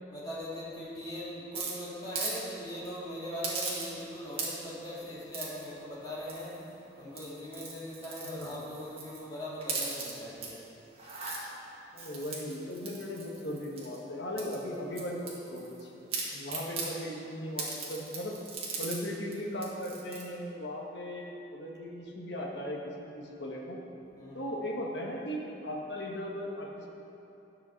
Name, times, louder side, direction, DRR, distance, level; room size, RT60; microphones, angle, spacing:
voice 1, 0.1-10.6 24.2-24.6, equal, 20° left, -8 dB, 2.6 m, -40 dB
sound 1, 1.5-2.4 2.7-2.9 3.4-4.1 4.3-4.8 5.3-5.6 6.3-6.7 7.1-9.2 9.6-10.5 10.9-11.4 12.0-14.0 14.4-15.8 16.1-16.9 17.6-19.0 19.3-19.4 19.6-20.2, right 4 dB, 30° right, 1.9 m, -38 dB
voice 2, 8.2-8.7 11.9-18.4 18.8-23.8 24.3-26.9, equal, 65° left, -1 dB, 1.5 m, -38 dB
11.0 x 5.8 x 7.2 m, 2.9 s
head